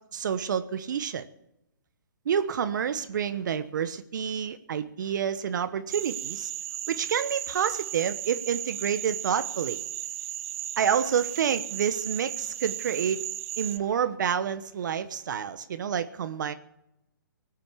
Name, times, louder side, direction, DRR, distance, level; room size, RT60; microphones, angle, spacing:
voice 1, 0.1-1.2 2.3-6.5 6.9-9.8 10.8-13.3 13.6-16.5, right 8 dB, 60° right, 12 dB, 1.1 m, -28 dB
sound 1, 5.9-13.8, right 13 dB, 40° right, 0.8 m, -35 dB
19.0 x 9.1 x 7.0 m, 0.82 s
hypercardioid pair, 145°, 11 cm